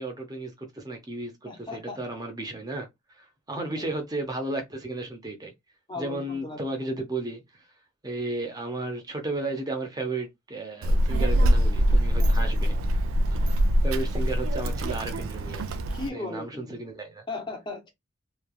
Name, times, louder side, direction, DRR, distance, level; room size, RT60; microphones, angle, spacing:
voice 1, 0.0-5.5 5.9-7.7 8.0-12.8 13.3-15.8 16.1-17.2, right 2 dB, 20° right, 0.6 m, -34 dB
voice 2, 1.5-2.0 3.6-3.9 5.9-6.6 12.2-12.3 15.9-16.8 17.3-17.9, left 2 dB, 20° left, 0.6 m, -37 dB
Child speech kid speaking, 10.8-16.1, equal, 75° right, 0.4 m, -23 dB
3.1 x 2.3 x 2.3 m
head